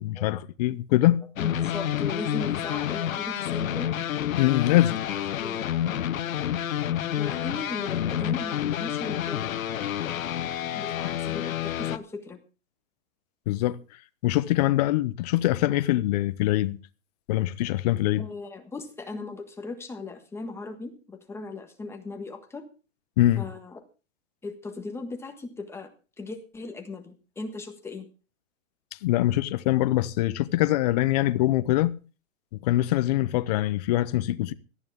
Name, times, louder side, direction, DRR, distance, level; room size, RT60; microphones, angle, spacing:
voice 1, 0.0-1.2 4.4-5.0 13.5-13.8 14.2-16.8 17.3-18.3 23.2-23.5 29.0-32.0 32.6-34.5, left 15 dB, 30° left, 0.7 m, -23 dB
sound 1, 1.4-12.0, left 10 dB, 85° left, 1.1 m, -29 dB
voice 2, 1.4-3.9 5.1-5.6 7.2-9.5 10.7-12.4 18.1-22.6 23.4-23.8 24.4-25.9 26.2-28.1, left 3 dB, 5° left, 1.5 m, -38 dB
18.0 x 13.0 x 3.6 m
hypercardioid pair, 160°, 40 cm